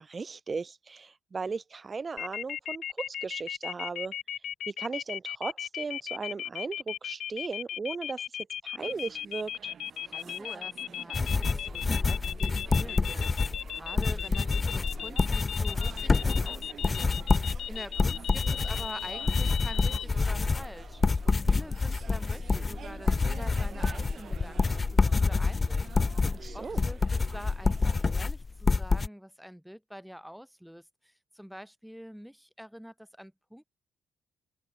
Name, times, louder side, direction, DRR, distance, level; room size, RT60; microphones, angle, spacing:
voice 1, 0.0-4.1 4.7-8.2 8.6-9.7 26.3-26.8, right 4 dB, 35° right, 1.2 m, -37 dB
sound 1, 2.2-20.0, left 10 dB, 70° left, 0.5 m, -36 dB
sound 2, 8.8-28.2, right 7 dB, 55° right, 5.5 m, -49 dB
voice 2, 10.0-17.1 17.7-26.0 26.5-33.6, equal, ahead, 3.0 m, -46 dB
sound 3, 11.1-29.1, left 4 dB, 30° left, 0.9 m, -27 dB
cardioid pair, 90°, 0 cm